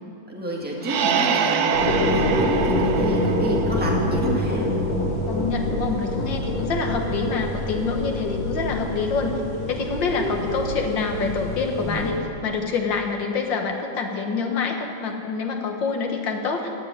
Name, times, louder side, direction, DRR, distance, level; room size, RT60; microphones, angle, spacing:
voice 1, 0.3-4.7 6.9-7.0 10.3-10.5, equal, 5° right, -2 dB, 1.9 m, -30 dB
sound 1, 0.8-4.4, right 6 dB, 65° right, 1.1 m, -25 dB
sound 2, 1.7-12.1, left 1 dB, 65° left, 4.0 m, -26 dB
voice 2, 5.3-9.3 9.7-16.7, left 4 dB, 80° left, 3 dB, 2.1 m, -26 dB
sound 3, 7.9-8.8 9.2-11.4 11.7-12.3, left 2 dB, 10° left, 1.7 m, -32 dB
15.5 x 7.7 x 9.4 m, 2.8 s
omnidirectional pair, 2.0 m